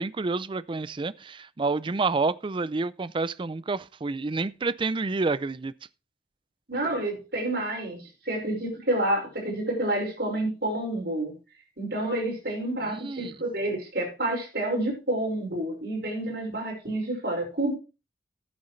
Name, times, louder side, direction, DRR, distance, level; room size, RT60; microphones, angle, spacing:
voice 1, 0.0-5.7 13.0-13.3, right 3 dB, 30° right, 0.4 m, -29 dB
voice 2, 6.7-11.3 11.8-17.7, right 1 dB, 65° right, 5.6 m, -29 dB
13.0 x 9.6 x 3.2 m
head